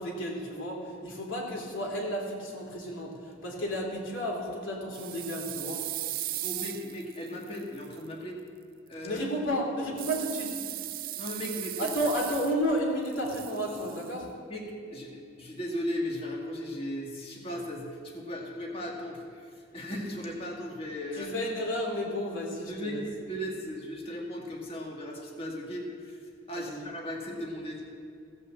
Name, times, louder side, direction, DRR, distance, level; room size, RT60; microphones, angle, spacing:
voice 1, 0.0-5.8 9.0-10.5 11.8-14.3 21.2-23.0 26.5-26.9, equal, 75° left, -1 dB, 2.8 m, -32 dB
sound 1, 4.9-8.0 10.0-12.8 13.0-14.1, right 15 dB, 45° right, 0.3 m, -37 dB
voice 2, 6.4-8.4 8.9-9.2 11.1-11.9 14.5-14.6 14.9-21.3 22.7-27.8, equal, 30° left, -1 dB, 1.9 m, -37 dB
16.0 x 5.5 x 7.5 m, 2.4 s
head